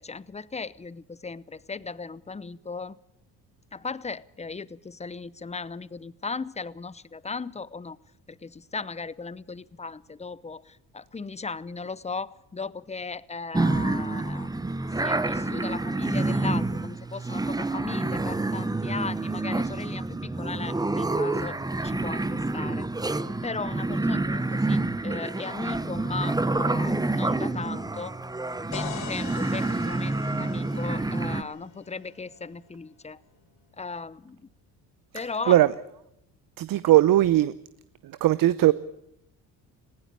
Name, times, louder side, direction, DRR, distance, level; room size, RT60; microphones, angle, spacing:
voice 1, 0.0-3.0 3.7-8.0 8.3-14.7 15.0-22.8 23.4-28.2 28.7-33.2 33.8-34.4 35.1-35.7, left 4 dB, 15° left, 0.8 m, -37 dB
sound 1, 13.5-31.4, right 2 dB, 10° right, 0.9 m, -28 dB
sound 2, 28.7-32.6, left 8 dB, 80° left, 5.0 m, -42 dB
voice 2, 36.6-37.5 38.2-38.7, right 14 dB, 60° right, 0.8 m, -18 dB
20.5 x 16.5 x 8.5 m
supercardioid pair, 80°, 39 cm